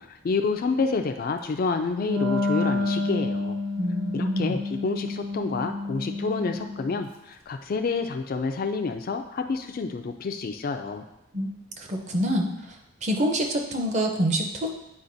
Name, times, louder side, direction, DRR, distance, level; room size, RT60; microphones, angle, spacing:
voice 1, 0.0-3.6 4.1-11.0, left 4 dB, 40° left, 5 dB, 0.3 m, -28 dB
Wind instrument woodwind instrument, 2.0-7.1, left 3 dB, 70° right, 1.0 m, -29 dB
voice 2, 3.8-4.5 11.3-11.5 11.8-12.5 13.0-14.7, equal, 30° right, 2 dB, 0.6 m, -26 dB
8.4 x 4.9 x 2.6 m, 0.88 s
head